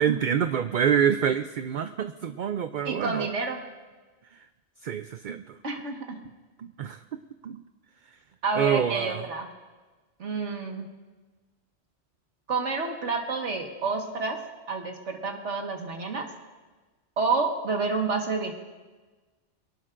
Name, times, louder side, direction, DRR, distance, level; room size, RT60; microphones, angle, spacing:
voice 1, 0.0-3.3 4.8-5.4 6.6-7.0 7.4-7.6 8.6-9.2, right 8 dB, 55° right, 9 dB, 0.6 m, -26 dB
voice 2, 2.8-3.6 5.6-6.2 8.4-9.5 10.2-10.9 12.5-14.4 14.7-16.3 17.2-18.5, right 4 dB, 75° right, 2 dB, 1.9 m, -29 dB
23.5 x 18.5 x 2.5 m, 1.3 s
omnidirectional pair, 1.2 m